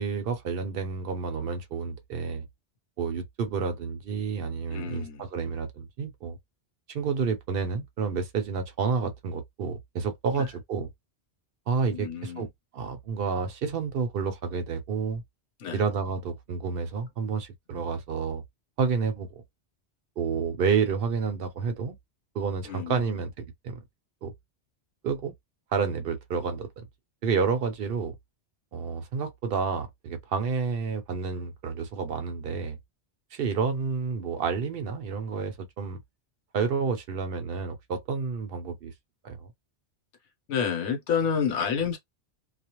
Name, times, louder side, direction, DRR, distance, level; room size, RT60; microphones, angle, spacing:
voice 1, 0.0-2.5 3.0-6.4 6.9-10.9 11.7-12.5 12.7-15.2 15.7-18.4 18.8-19.4 20.2-22.0 22.3-23.8 24.2-24.3 25.0-25.3 25.7-26.9 27.2-28.1 28.7-32.8 33.3-36.0 36.5-38.9 39.2-39.5, right 5 dB, 60° right, 0.7 m, -30 dB
voice 2, 4.7-5.2 10.3-10.5 11.9-12.5 15.6-15.8 22.6-23.2 40.5-42.0, left 7 dB, 90° left, 1.1 m, -29 dB
2.4 x 2.0 x 2.9 m
omnidirectional pair, 1.2 m